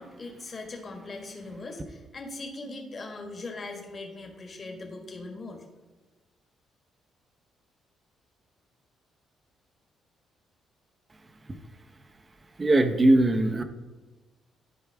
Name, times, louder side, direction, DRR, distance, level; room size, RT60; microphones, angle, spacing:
voice 1, 0.0-5.6, left 2 dB, 40° left, 3 dB, 1.5 m, -40 dB
voice 2, 12.6-13.6, right 1 dB, 30° right, 7 dB, 0.7 m, -20 dB
11.5 x 4.7 x 3.5 m, 1.3 s
cardioid pair, 90°, 0 cm